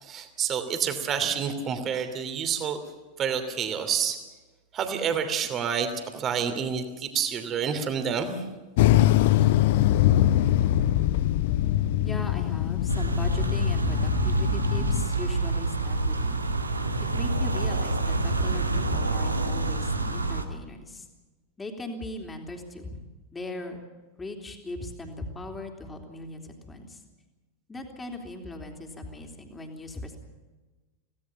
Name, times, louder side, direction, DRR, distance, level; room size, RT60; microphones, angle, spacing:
voice 1, 0.0-2.8 3.2-4.2 4.7-8.4, right 7 dB, 30° right, 8 dB, 2.9 m, -28 dB
sound 1, 8.8-15.0, left 13 dB, 50° left, 0.8 m, -23 dB
voice 2, 12.0-16.4 17.1-21.1 21.6-23.0 23.3-23.8 24.2-27.0 27.7-30.2, left 2 dB, 15° left, 3 dB, 3.6 m, -38 dB
sound 2, 12.9-20.4, right 3 dB, 80° right, 1.8 m, -27 dB
26.5 x 17.5 x 7.1 m, 1.2 s
figure-of-eight pair, 90°, 0 cm